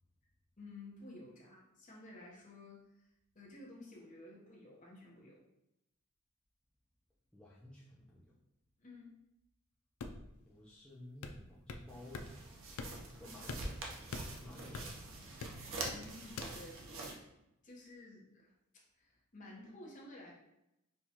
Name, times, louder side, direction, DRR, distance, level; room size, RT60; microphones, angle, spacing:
voice 1, 0.6-3.0 3.3-5.4 8.8-9.1 15.9-17.3 17.6-20.3, left 2 dB, 35° left, -3 dB, 0.8 m, -53 dB
voice 2, 7.3-8.3 10.5-12.3 13.2-13.8 14.3-14.9, left 1 dB, 5° left, -8 dB, 0.4 m, -53 dB
sound 1, 10.0-10.4 11.2-11.9 12.1-12.3 12.8-13.2 13.5-15.0 15.4-16.0 16.4-16.5, left 3 dB, 80° left, 0.4 m, -44 dB
sound 2, 11.9-17.1, right 2 dB, 60° right, 0.6 m, -45 dB
4.5 x 2.3 x 2.8 m, 0.87 s
head